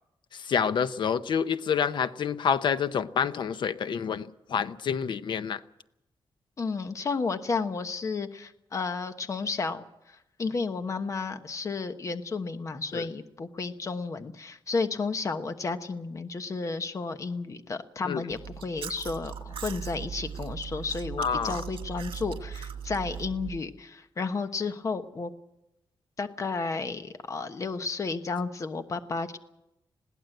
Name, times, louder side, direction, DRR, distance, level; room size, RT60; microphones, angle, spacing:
voice 1, 0.3-5.6 12.9-13.1 18.0-18.2 21.2-21.6, left 7 dB, 65° left, 0.8 m, -28 dB
voice 2, 6.6-9.8 10.4-25.3 26.2-29.4, left 4 dB, 35° left, 1.1 m, -32 dB
Chewing mastication, 18.3-23.6, right 7 dB, 85° right, 1.7 m, -38 dB
21.0 x 16.5 x 7.9 m
wide cardioid pair, 165°, 9 cm